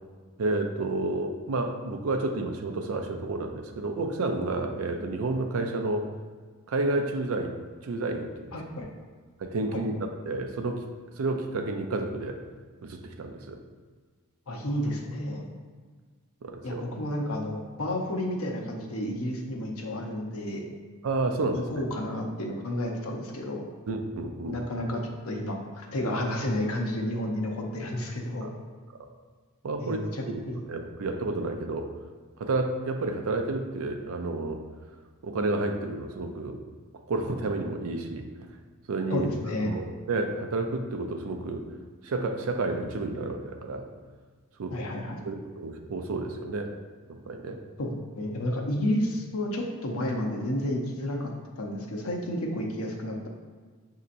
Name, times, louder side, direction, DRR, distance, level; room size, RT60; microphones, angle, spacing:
voice 1, 0.4-6.0 6.7-7.5 7.8-8.5 9.4-10.8 11.2-12.4 12.8-13.6 16.4-16.9 21.0-21.7 23.9-24.6 28.4-28.5 29.6-30.0 30.3-30.4 30.7-31.9 32.4-34.6 35.2-36.6 37.1-38.3 38.9-39.3 39.6-41.7 42.0-43.8 44.6-44.8 45.2-46.7 47.1-47.6, right 2 dB, 70° right, 5 dB, 0.5 m, -30 dB
voice 2, 8.5-8.9 9.7-9.8 14.5-15.5 16.6-20.7 21.5-23.6 24.5-28.5 29.8-30.6 39.1-39.7 44.7-45.2 47.8-47.9 48.1-51.3 51.6-53.3, left 1 dB, 70° left, 1 dB, 0.7 m, -31 dB
6.6 x 2.8 x 2.5 m, 1.5 s
head